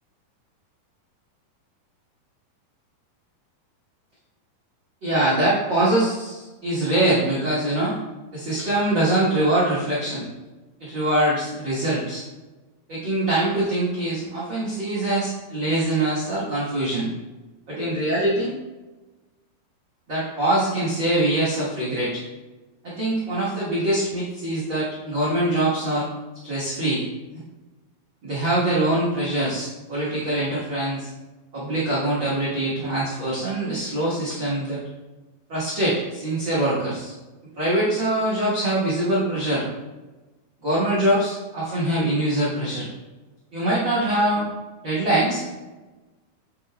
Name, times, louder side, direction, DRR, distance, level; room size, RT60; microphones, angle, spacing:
voice 1, 5.0-7.9 8.3-10.3 10.8-12.2 12.9-17.1 17.7-18.5 20.1-22.2 22.8-26.1 26.4-27.0 28.2-31.1 31.5-34.8 35.5-37.1 37.6-39.6 40.6-42.9 43.5-44.4 44.8-45.5, right 1 dB, 55° right, -8 dB, 1.3 m, -23 dB
7.8 x 5.3 x 2.3 m, 1.2 s
omnidirectional pair, 4.3 m